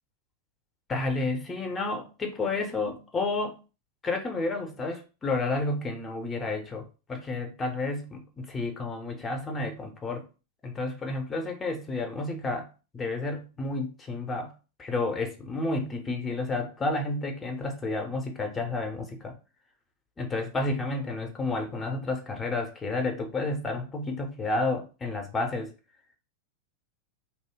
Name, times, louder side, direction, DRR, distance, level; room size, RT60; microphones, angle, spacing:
voice 1, 0.9-3.6 4.0-10.2 10.6-12.7 12.9-14.5 14.8-19.3 20.2-25.7, left 2 dB, 15° left, 4 dB, 0.6 m, -31 dB
2.6 x 2.1 x 3.3 m, 0.32 s
figure-of-eight pair, 90°, 0 cm